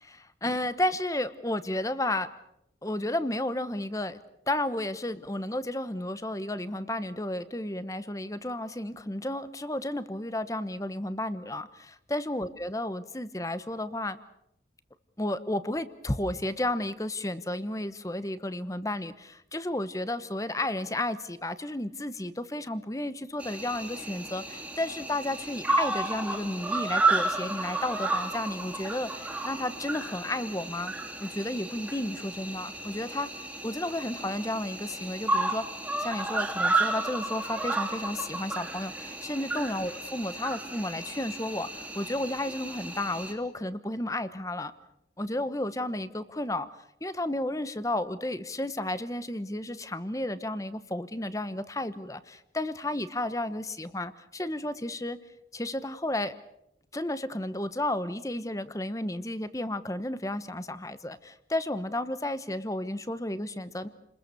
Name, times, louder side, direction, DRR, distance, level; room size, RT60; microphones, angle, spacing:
voice 1, 0.1-2.3 2.8-4.2 4.5-14.2 15.2-30.9 31.2-33.3 33.6-35.6 36.0-44.7 45.2-46.7 47.0-55.2 55.5-56.3 56.9-63.9, left 1 dB, 20° left, 13 dB, 1.0 m, -32 dB
Cricket, 23.4-43.3, right 2 dB, 5° right, 2.7 m, -32 dB
29.5 x 21.0 x 6.9 m, 0.82 s
head